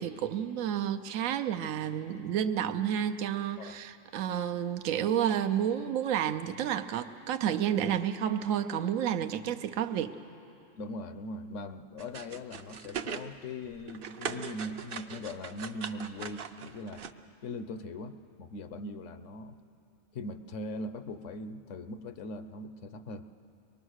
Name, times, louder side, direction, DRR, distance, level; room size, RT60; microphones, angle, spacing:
voice 1, 0.0-10.2, right 9 dB, 80° right, 7 dB, 1.1 m, -30 dB
voice 2, 10.8-17.1 17.4-19.6 20.1-23.3, left 2 dB, 70° left, 10 dB, 1.1 m, -40 dB
sound 1, 12.0-13.3 13.6-17.1, right 7 dB, 55° right, 0.8 m, -40 dB
23.5 x 20.0 x 6.4 m, 2.7 s
omnidirectional pair, 1.4 m